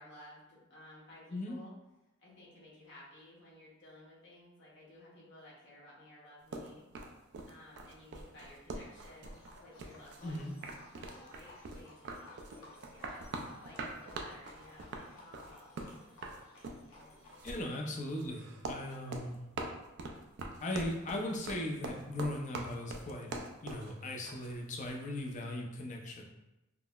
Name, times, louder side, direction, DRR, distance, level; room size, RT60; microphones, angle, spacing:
voice 1, 0.0-1.7 2.2-6.8 7.5-10.5 10.9-15.8 16.9-17.4, left 1 dB, 60° left, -6 dB, 0.9 m, -56 dB
sound 1, 6.5-25.0, right 2 dB, 60° right, 0.3 m, -44 dB
Livestock farm animals working animals, 8.8-17.4, left 2 dB, 85° left, 0.7 m, -57 dB
voice 2, 10.2-10.5 17.4-19.4 20.6-23.3 23.6-26.2, left 1 dB, 40° left, 1 dB, 0.4 m, -38 dB
3.6 x 2.0 x 2.2 m, 0.95 s
head